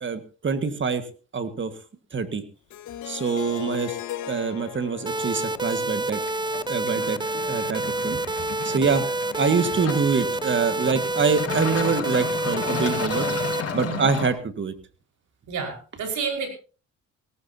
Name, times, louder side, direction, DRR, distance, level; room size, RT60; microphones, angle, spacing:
voice 1, 0.0-1.1 1.3-1.7 2.1-2.4 3.0-4.0 4.3-6.2 6.7-9.1 9.3-13.3 13.7-14.7, right 5 dB, 40° right, 10 dB, 1.8 m, -25 dB
Harp, 2.7-7.7, left 12 dB, 75° left, 1.7 m, -38 dB
sound 1, 5.1-14.3, left 6 dB, 50° left, 4.2 m, -34 dB
sound 2, 5.1-13.6, right 2 dB, 15° right, 0.7 m, -28 dB
voice 2, 13.7-14.1 15.5-16.5, right 5 dB, 70° right, 2 dB, 5.3 m, -31 dB
18.5 x 18.0 x 2.9 m, 0.37 s
cardioid pair, 90°, 30 cm